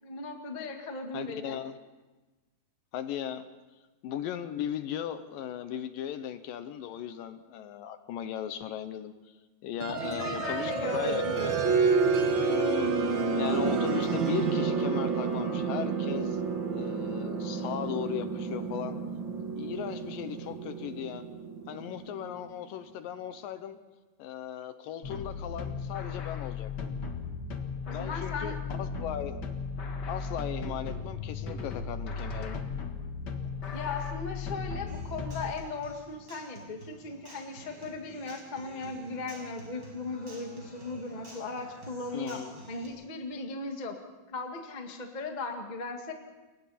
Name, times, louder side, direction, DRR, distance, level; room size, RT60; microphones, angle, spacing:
voice 1, 0.0-1.6 9.9-11.3 27.9-28.6 33.7-42.4 42.7-44.0 44.3-46.1, left 3 dB, 25° left, 3 dB, 0.9 m, -37 dB
voice 2, 1.1-1.8 2.9-3.5 4.0-9.1 9.6-11.6 12.5-12.9 13.4-16.4 16.7-19.0 19.6-21.2 21.7-23.8 24.2-26.9 27.9-29.4 30.1-32.6 42.1-42.6, left 10 dB, 75° left, 10 dB, 2.3 m, -37 dB
sound 1, 9.8-22.3, right 4 dB, 50° right, 1.4 m, -29 dB
sound 2, 25.0-35.5, left 5 dB, 45° left, 1.4 m, -36 dB
Human voice / Acoustic guitar, 34.9-42.9, right 2 dB, 25° right, 6.1 m, -50 dB
29.0 x 22.5 x 4.3 m, 1.2 s
omnidirectional pair, 4.4 m